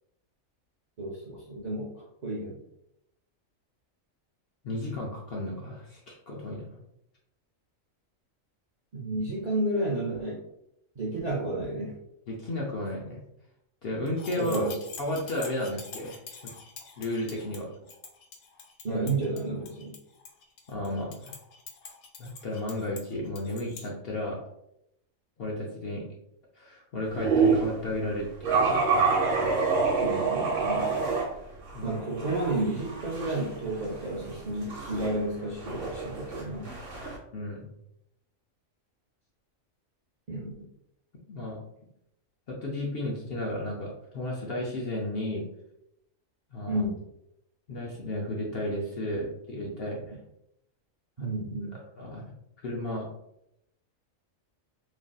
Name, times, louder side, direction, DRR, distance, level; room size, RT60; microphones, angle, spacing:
voice 1, 1.0-1.9 2.2-2.6 8.9-10.4 11.0-12.0 14.4-14.8 18.8-19.9 30.0-31.0 31.8-36.7 40.3-40.5 46.7-47.0 51.2-51.8, right 2 dB, 45° right, -5 dB, 0.5 m, -31 dB
voice 2, 4.6-6.8 12.3-13.2 13.8-14.6 15.0-16.2 17.0-17.7 18.9-19.1 20.7-21.3 22.2-24.4 25.4-26.1 26.6-28.9 31.7-32.0 37.3-37.7 41.3-41.6 42.5-45.5 46.5-46.8 47.7-50.2 51.2-51.3 51.7-52.2 52.6-53.1, left 1 dB, 60° left, -2 dB, 0.7 m, -33 dB
sound 1, 14.1-23.9, left 5 dB, 80° left, 1.0 m, -46 dB
sound 2, 27.1-27.7 28.4-31.2 31.7-37.2, right 4 dB, 70° right, 1.3 m, -27 dB
3.2 x 2.5 x 2.2 m, 0.79 s
omnidirectional pair, 1.4 m